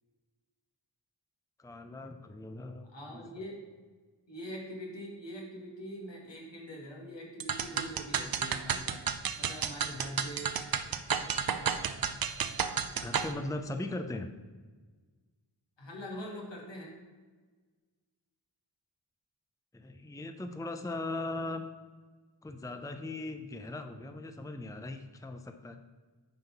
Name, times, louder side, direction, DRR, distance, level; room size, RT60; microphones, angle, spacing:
voice 1, 1.6-3.4 13.0-14.3 19.7-21.6 22.4-25.8, left 2 dB, 10° left, 7 dB, 0.6 m, -39 dB
voice 2, 2.9-3.6 4.3-9.0 9.4-10.5 15.8-17.0, equal, 75° left, -2 dB, 2.2 m, -43 dB
sound 1, 7.4-13.3, right 7 dB, 55° right, 0.6 m, -32 dB
9.2 x 3.7 x 5.9 m, 1.4 s
cardioid pair, 45°, 44 cm